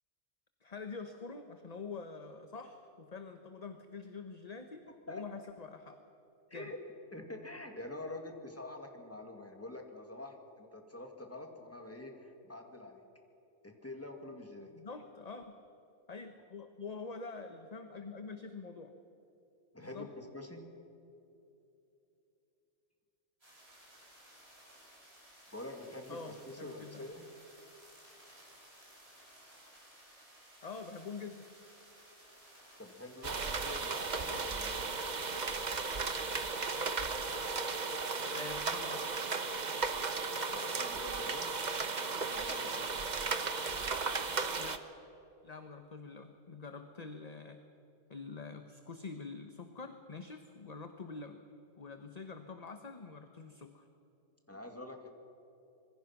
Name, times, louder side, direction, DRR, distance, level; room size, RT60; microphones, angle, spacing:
voice 1, 0.6-6.0 6.5-6.7 14.7-15.6 16.1-18.9 19.8-20.1 26.1-27.1 30.6-31.5 38.3-39.2 44.6-44.9 45.4-47.6 48.1-51.4 51.8-53.8, left 4 dB, 35° left, 7 dB, 1.1 m, -46 dB
voice 2, 4.9-5.2 6.5-6.8 7.1-13.0 13.6-14.7 19.7-20.7 25.5-27.2 32.8-34.9 40.5-41.5 42.3-42.9 54.5-55.1, left 2 dB, 10° left, 3 dB, 2.3 m, -46 dB
sound 1, 23.4-39.1, right 1 dB, 55° right, 7.0 m, -58 dB
sound 2, 33.2-44.8, right 4 dB, 40° right, 1.1 m, -35 dB
25.5 x 22.0 x 6.0 m, 2.8 s
omnidirectional pair, 1.3 m